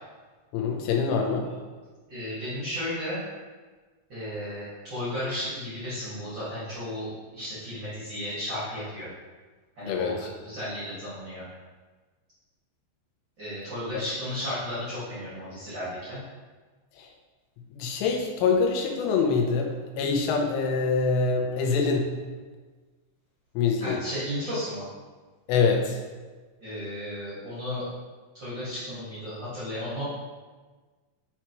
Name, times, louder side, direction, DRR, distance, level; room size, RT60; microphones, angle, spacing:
voice 1, 0.5-1.5 9.9-10.3 13.9-14.0 17.0-17.1 17.7-22.1 23.5-24.0 25.5-26.0, left 5 dB, 85° left, 2 dB, 3.3 m, -25 dB
voice 2, 2.1-3.2 4.1-9.1 9.7-11.4 13.4-16.2 23.8-24.8 26.6-27.8 28.3-30.0, left 1 dB, 70° right, -12 dB, 1.0 m, -34 dB
8.8 x 4.6 x 3.0 m, 1.4 s
omnidirectional pair, 5.5 m